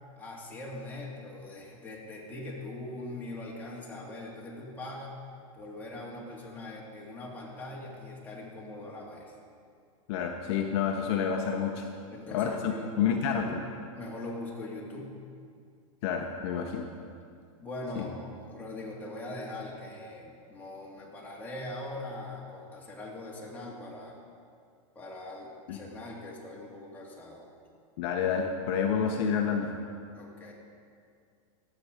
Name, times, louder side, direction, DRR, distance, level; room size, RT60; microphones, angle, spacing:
voice 1, 0.2-5.1 5.5-9.3 12.1-12.9 13.3-13.6 13.9-15.1 17.6-24.2 25.0-27.5 30.1-30.5, left 2 dB, 10° left, -4 dB, 1.9 m, -41 dB
voice 2, 10.1-11.9 12.3-13.6 16.0-16.9 18.0-18.1 25.7-25.8 28.0-29.7, left 7 dB, 50° left, 2 dB, 0.9 m, -29 dB
12.5 x 7.8 x 5.1 m, 2.2 s
supercardioid pair, 145°, 17 cm